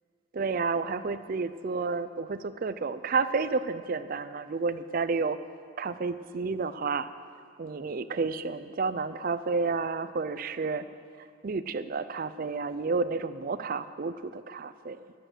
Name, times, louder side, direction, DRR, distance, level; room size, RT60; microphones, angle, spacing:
voice 1, 0.3-5.4 5.8-7.1 7.6-10.8 11.2-15.1, right 4 dB, 45° right, 12 dB, 0.4 m, -31 dB
13.0 x 6.3 x 7.9 m, 2.2 s
head